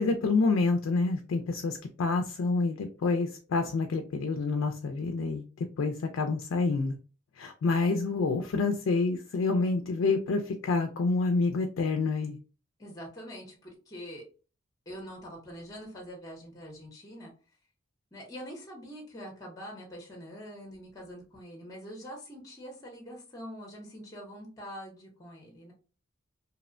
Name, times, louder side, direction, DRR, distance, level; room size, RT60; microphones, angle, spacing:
voice 1, 0.0-6.9 7.4-12.4, left 3 dB, 75° left, 0.4 m, -28 dB
voice 2, 12.8-14.2 14.9-17.3 18.1-25.7, equal, 20° left, 0.6 m, -44 dB
2.7 x 2.0 x 2.5 m
head